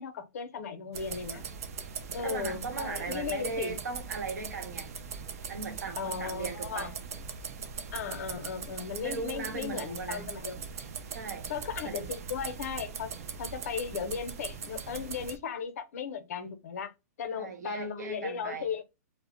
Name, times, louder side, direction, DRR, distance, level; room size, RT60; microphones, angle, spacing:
voice 1, 0.0-1.4 2.1-3.8 6.0-6.9 7.9-10.6 11.5-16.9 17.2-18.8, left 6 dB, 60° left, 0.5 m, -36 dB
sound 1, 0.9-15.4, right 6 dB, 60° right, 0.4 m, -40 dB
voice 2, 2.2-4.9 5.5-7.0 9.0-10.3 11.1-11.5 11.8-12.1 17.3-18.7, right 5 dB, 80° right, 0.9 m, -38 dB
2.0 x 2.0 x 3.7 m
hypercardioid pair, 160°, 9 cm